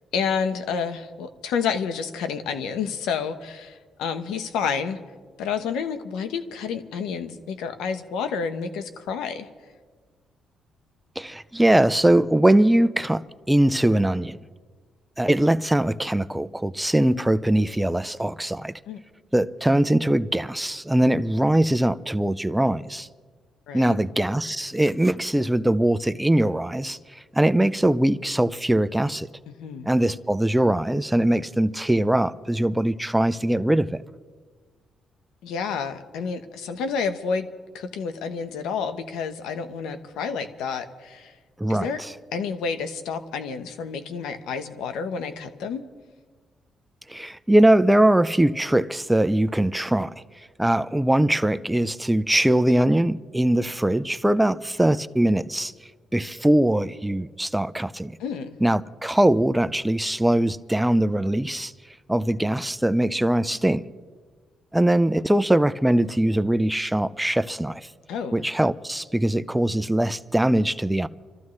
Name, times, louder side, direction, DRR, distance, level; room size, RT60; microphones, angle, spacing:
voice 1, 0.1-5.0 5.4-9.5 18.9-19.0 23.7-24.0 29.5-29.9 35.4-37.5 37.7-41.3 41.7-42.0 42.3-45.8 58.2-58.6 68.1-68.5, left 6 dB, 90° left, 1.1 m, -29 dB
voice 2, 11.2-14.4 15.2-18.7 19.3-23.1 23.7-27.0 27.3-29.3 29.9-34.0 41.6-42.1 47.1-50.1 50.6-55.7 56.1-58.2 58.6-61.7 62.1-63.8 64.7-67.8 68.3-71.1, right 1 dB, 5° right, 0.5 m, -21 dB
26.5 x 14.0 x 3.2 m
cardioid pair, 90°, 0 cm